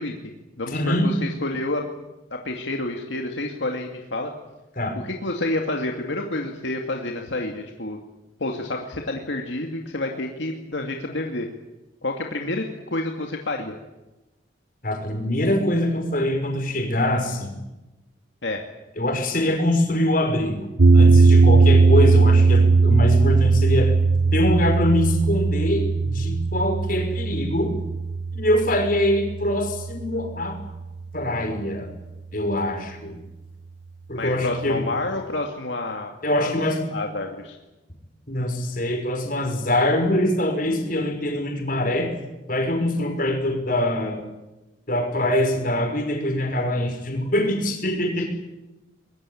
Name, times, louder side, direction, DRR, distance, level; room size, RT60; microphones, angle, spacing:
voice 1, 0.0-1.9 2.3-4.3 5.0-8.0 8.4-11.5 12.0-13.7 18.4-18.6 34.1-36.5 36.9-37.6, left 2 dB, 75° left, 2 dB, 2.4 m, -29 dB
voice 2, 0.7-1.1 4.8-5.0 14.8-17.5 19.0-20.7 20.9-24.0 24.3-27.7 28.3-30.6 31.1-31.9 32.3-33.2 34.1-34.8 36.2-36.8 38.3-42.1 42.5-44.2 44.9-48.3, left 1 dB, 50° left, 4 dB, 5.7 m, -23 dB
sound 1, 20.8-31.0, right 4 dB, 75° right, 1.2 m, -18 dB
24.0 x 21.5 x 8.6 m, 1.0 s
head